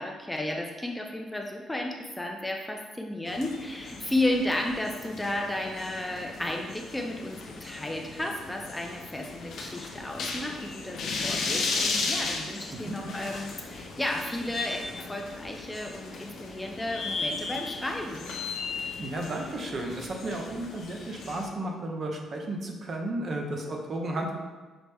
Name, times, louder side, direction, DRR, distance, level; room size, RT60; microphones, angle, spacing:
voice 1, 0.0-18.3, left 1 dB, 10° left, 2 dB, 0.4 m, -33 dB
sound 1, 3.3-21.5, left 4 dB, 70° left, 0.6 m, -36 dB
voice 2, 19.0-24.3, right 1 dB, 50° right, 1 dB, 0.7 m, -33 dB
5.9 x 2.0 x 3.3 m, 1.3 s
cardioid pair, 90°, 0 cm